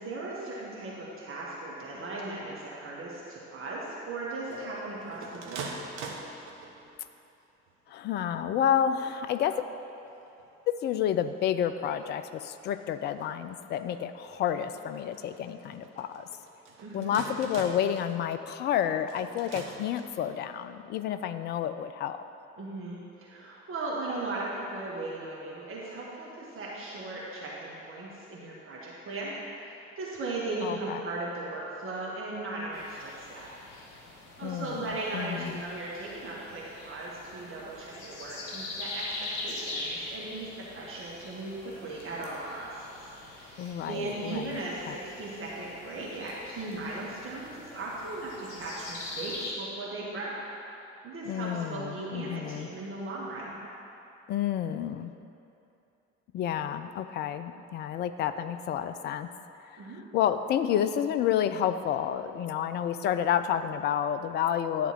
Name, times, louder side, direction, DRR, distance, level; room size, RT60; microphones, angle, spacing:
voice 1, 0.0-5.7 16.8-17.1 22.6-33.5 34.4-50.4 51.0-53.6 59.8-60.0, right 2 dB, 35° right, -5 dB, 1.5 m, -37 dB
sound 1, 4.5-7.0 7.7-8.2 8.6-8.7 8.9-9.5 9.9-20.4, right 4 dB, 65° right, 1.0 m, -46 dB
voice 2, 7.9-9.6 10.7-16.3 16.9-22.2 30.6-31.0 34.4-35.6 43.6-44.6 44.9-45.0 51.2-52.7 54.3-55.1 56.3-59.3 60.1-64.9, left 9 dB, 30° left, 11 dB, 0.4 m, -30 dB
sound 2, 32.7-49.5, left 2 dB, 60° left, 1.5 m, -43 dB
11.0 x 3.7 x 6.3 m, 2.8 s
figure-of-eight pair, 55°, 37 cm